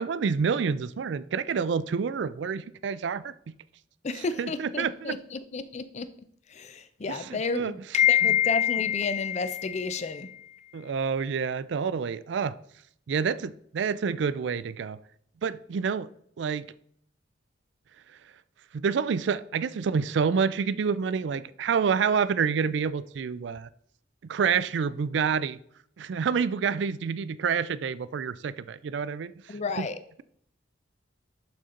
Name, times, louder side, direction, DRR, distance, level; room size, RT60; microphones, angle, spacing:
voice 1, 0.0-3.3 4.4-5.2 7.1-7.8 10.7-12.6 13.1-15.0 15.4-16.1 16.4-16.7 18.7-23.7 24.3-25.6 26.0-29.9, right 6 dB, 65° right, 17 dB, 0.4 m, -28 dB
voice 2, 4.0-6.1 6.5-10.8 29.5-30.0, left 7 dB, 35° left, 12 dB, 0.5 m, -28 dB
11.5 x 4.3 x 3.8 m, 0.68 s
head